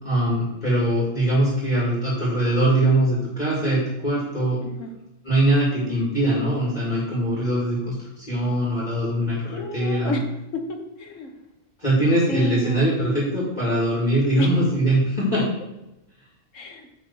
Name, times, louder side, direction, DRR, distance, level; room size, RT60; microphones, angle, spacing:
voice 1, 0.0-4.6 5.2-10.2 11.8-15.5, right 1 dB, 35° left, -6 dB, 2.5 m, -22 dB
voice 2, 9.5-10.2 10.5-11.3 12.3-12.9 14.4-14.5 16.5-16.9, left 3 dB, 75° left, 5 dB, 1.5 m, -30 dB
9.5 x 4.0 x 6.8 m, 0.90 s
omnidirectional pair, 1.3 m